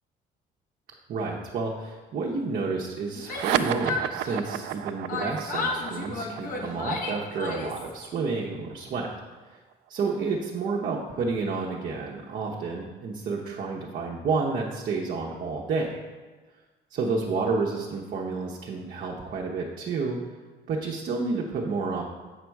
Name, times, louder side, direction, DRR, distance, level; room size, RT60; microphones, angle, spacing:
voice 1, 1.1-9.1 9.5-9.6 9.9-16.0 16.9-20.2 20.7-22.0, right 4 dB, 55° right, -2 dB, 0.9 m, -30 dB
Yell, 3.1-4.8 5.1-7.9, left 3 dB, 55° left, 1.3 m, -33 dB
sound 1, 3.2-10.1, right 12 dB, 90° right, 0.4 m, -33 dB
8.1 x 5.1 x 4.6 m, 1.3 s
cardioid pair, 110°, 17 cm